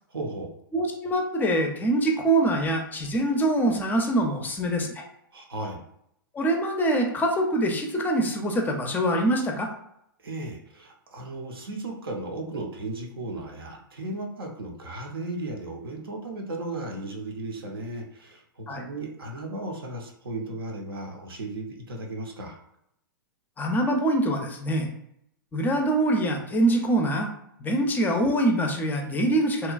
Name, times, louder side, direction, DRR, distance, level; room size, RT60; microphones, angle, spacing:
voice 1, 0.1-0.5 5.3-5.8 10.2-22.6, right 2 dB, 85° right, 1 dB, 0.6 m, -35 dB
voice 2, 0.7-5.0 6.3-9.7 18.7-18.9 23.6-24.9 25.5-27.3 27.6-29.7, right 1 dB, 15° left, 3 dB, 0.4 m, -24 dB
2.8 x 2.2 x 2.4 m, 0.75 s
hypercardioid pair, 110°, 12 cm